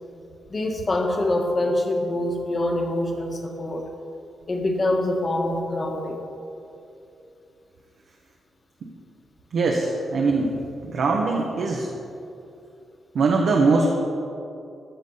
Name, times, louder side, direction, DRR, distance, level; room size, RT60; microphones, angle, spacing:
voice 1, 0.5-3.9 4.5-6.2, left 1 dB, 30° left, 2 dB, 1.4 m, -25 dB
voice 2, 9.5-10.6 10.8-11.9 13.1-13.9, right 3 dB, 70° right, 0 dB, 1.1 m, -21 dB
13.5 x 6.8 x 5.5 m, 2.7 s
wide cardioid pair, 120°, 0 cm